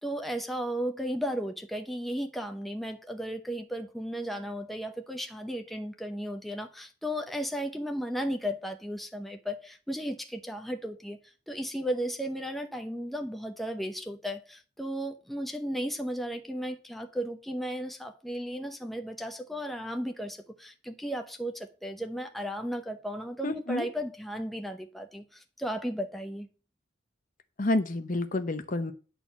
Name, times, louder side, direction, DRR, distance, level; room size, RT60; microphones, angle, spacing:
voice 1, 0.0-11.2 11.5-26.5, equal, ahead, 0.7 m, -35 dB
voice 2, 23.4-23.9 27.6-28.9, left 2 dB, 40° left, 0.8 m, -29 dB
9.9 x 4.4 x 7.0 m
head